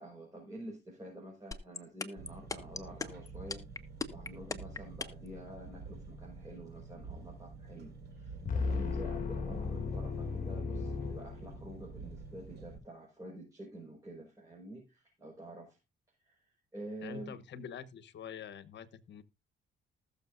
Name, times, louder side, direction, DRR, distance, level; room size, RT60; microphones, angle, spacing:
voice 1, 0.0-3.6 4.1-15.8 16.2-16.4 16.7-17.4, right 1 dB, 15° right, 5.1 m, -48 dB
sound 1, 1.5-5.3, left 3 dB, 15° left, 1.2 m, -37 dB
Engine, 2.2-12.8, right 3 dB, 55° right, 5.4 m, -48 dB
sound 2, 8.4-11.9, left 4 dB, 40° left, 1.5 m, -35 dB
voice 2, 17.0-19.2, left 7 dB, 65° left, 1.1 m, -46 dB
19.5 x 6.8 x 2.6 m
cardioid pair, 90°, 20 cm